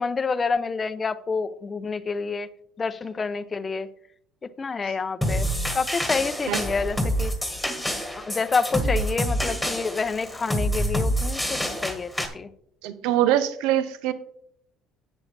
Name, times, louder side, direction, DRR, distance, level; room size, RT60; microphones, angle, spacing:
voice 1, 0.0-2.5 2.8-3.9 4.6-5.5 5.7-7.3 8.2-12.5, left 4 dB, 20° left, 14 dB, 0.5 m, -28 dB
sound 1, 5.2-12.3, equal, ahead, 1.5 m, -27 dB
voice 2, 12.8-14.1, right 12 dB, 80° right, 12 dB, 0.7 m, -23 dB
10.5 x 8.4 x 3.3 m, 0.68 s
cardioid pair, 140°, 0 cm